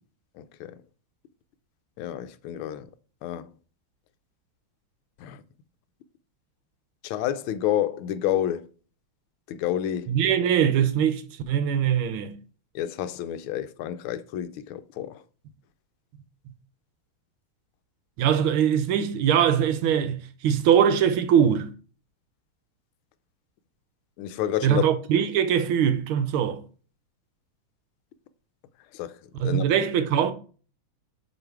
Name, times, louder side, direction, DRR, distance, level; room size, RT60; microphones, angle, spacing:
voice 1, 0.4-0.7 2.0-2.9 3.2-3.5 5.2-5.4 7.0-8.7 9.5-10.1 12.7-15.2 24.2-24.8 28.9-29.1 29.4-29.6, left 11 dB, 85° left, 1.5 m, -29 dB
voice 2, 10.1-12.3 18.2-21.7 24.6-26.6 29.4-30.3, right 8 dB, 80° right, 1.6 m, -22 dB
8.0 x 3.2 x 4.6 m
omnidirectional pair, 2.3 m